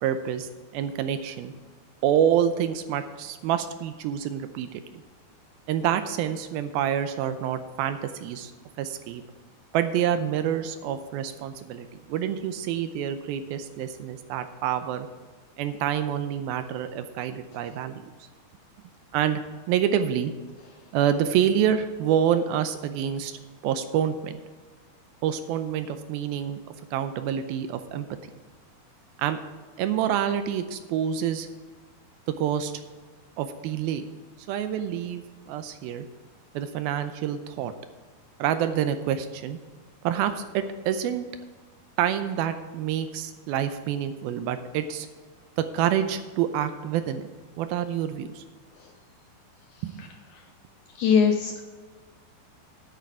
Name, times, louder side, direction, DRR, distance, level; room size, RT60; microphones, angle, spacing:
voice 1, 0.0-1.5 2.0-5.0 5.7-8.5 8.8-9.2 9.7-15.1 15.6-18.0 19.1-19.4 19.7-20.3 20.9-24.4 25.2-26.6 26.9-28.1 29.2-29.4 29.8-31.5 32.4-32.7 33.4-34.0 34.5-36.1 36.5-37.7 38.4-39.6 40.0-41.3 42.0-45.1 45.6-47.2 47.6-48.4 49.8-50.1, right 9 dB, 80° right, 9 dB, 2.4 m, -27 dB
voice 2, 51.0-51.6, left 6 dB, 85° left, 5 dB, 1.7 m, -20 dB
10.0 x 9.3 x 4.7 m, 1.4 s
omnidirectional pair, 4.5 m